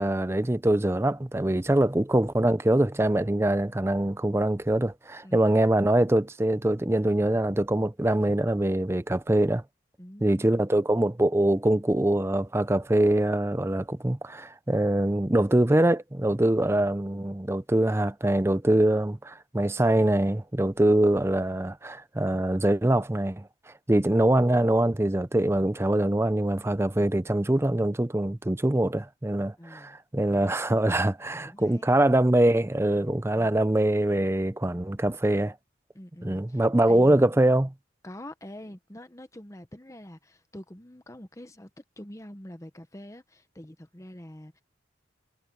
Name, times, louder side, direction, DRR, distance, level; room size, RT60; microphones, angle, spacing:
voice 1, 0.0-9.6 10.2-23.5 23.9-35.5 36.2-37.7, right 1 dB, 15° right, 0.5 m, -23 dB
voice 2, 5.2-5.6 10.0-10.8 16.3-16.9 26.6-26.7 29.6-30.0 31.4-32.0 32.9-33.7 35.9-37.3 38.0-44.6, left 1 dB, 15° left, 1.0 m, -46 dB
head